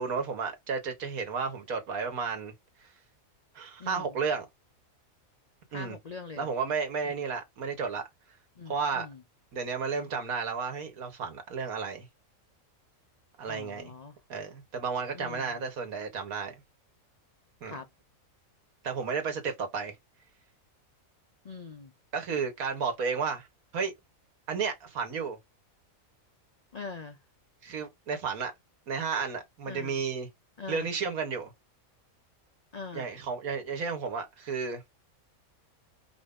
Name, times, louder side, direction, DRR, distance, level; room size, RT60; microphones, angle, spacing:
voice 1, 0.0-2.5 3.6-4.5 5.7-6.0 6.4-8.0 8.7-9.1 9.5-12.1 13.4-13.9 14.3-16.6 17.6-17.8 18.8-19.9 22.1-23.5 23.7-23.9 24.5-25.4 27.6-28.5 28.9-30.3 30.7-31.5 32.9-34.8, right 5 dB, 85° right, 1.7 m, -32 dB
voice 2, 3.8-4.2 5.7-6.5 8.6-9.2 13.5-14.2 15.1-15.7 17.6-17.9 21.4-21.9 26.7-27.2 29.7-30.0 30.6-30.9 32.7-33.1, left 4 dB, 70° left, 0.3 m, -42 dB
4.7 x 2.7 x 3.6 m
omnidirectional pair, 1.5 m